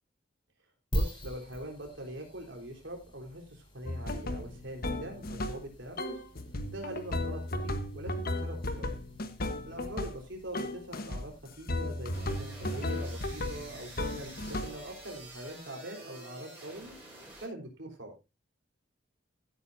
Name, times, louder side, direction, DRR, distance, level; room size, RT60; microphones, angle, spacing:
sound 1, 0.9-15.7, equal, 25° left, 4.1 m, -44 dB
voice 1, 0.9-6.2 6.7-8.9 9.7-16.9 17.4-18.1, right 1 dB, 75° right, 2 dB, 3.9 m, -43 dB
sound 2, 3.9-5.7 6.0-10.3 10.5-11.3 11.7-14.9, left 1 dB, 50° left, 1.3 m, -35 dB
sound 3, 12.1-17.5, right 1 dB, 10° right, 6.0 m, -49 dB
16.0 x 9.3 x 2.7 m, 0.25 s
head